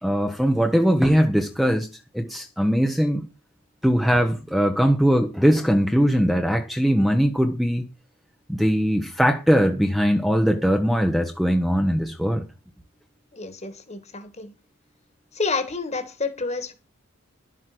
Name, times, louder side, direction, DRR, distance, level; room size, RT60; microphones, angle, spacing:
voice 1, 0.0-1.9 2.1-3.2 3.8-7.8 8.5-12.5, equal, ahead, 0.9 m, -20 dB
voice 2, 13.3-14.5 15.3-16.7, left 4 dB, 30° left, 1.8 m, -29 dB
12.0 x 7.7 x 6.0 m
head